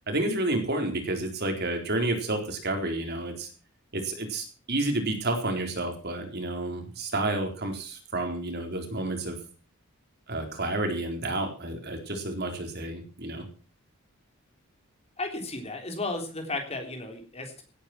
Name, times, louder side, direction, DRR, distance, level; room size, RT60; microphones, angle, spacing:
voice 1, 0.1-3.5 3.9-9.4 10.3-13.4, right 2 dB, 50° right, 4 dB, 4.1 m, -30 dB
voice 2, 15.2-17.6, left 2 dB, 30° left, 4 dB, 3.6 m, -34 dB
17.0 x 10.0 x 6.0 m, 0.37 s
head